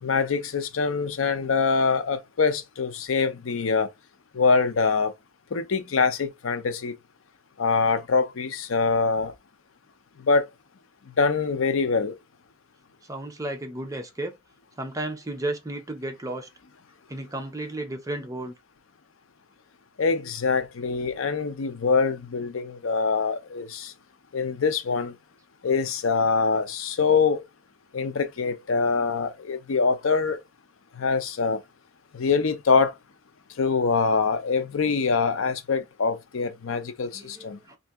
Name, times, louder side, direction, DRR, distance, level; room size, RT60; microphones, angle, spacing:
voice 1, 0.0-3.9 4.3-5.1 5.5-6.9 7.6-9.3 10.2-10.5 11.2-12.2 20.0-23.9 24.3-25.2 25.6-27.4 27.9-30.4 30.9-31.6 32.1-32.9 33.6-37.6, left 4 dB, 80° left, 0.6 m, -24 dB
voice 2, 13.1-14.3 14.8-16.5 17.1-18.5 37.1-37.8, right 2 dB, 15° right, 0.6 m, -33 dB
2.7 x 2.6 x 3.5 m
head